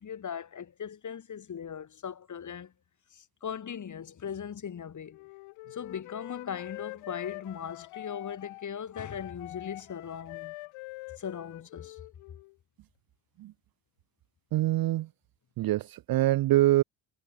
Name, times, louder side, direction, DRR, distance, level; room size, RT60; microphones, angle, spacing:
voice 1, 0.0-2.7 3.1-5.2 5.7-10.5 11.2-12.0, left 8 dB, 35° left, 2.3 m, -39 dB
Wind instrument woodwind instrument, 5.1-12.5, left 25 dB, 85° left, 2.2 m, -45 dB
voice 2, 14.5-15.1 15.6-16.8, right 15 dB, 50° right, 0.6 m, -24 dB
cardioid pair, 95°, 48 cm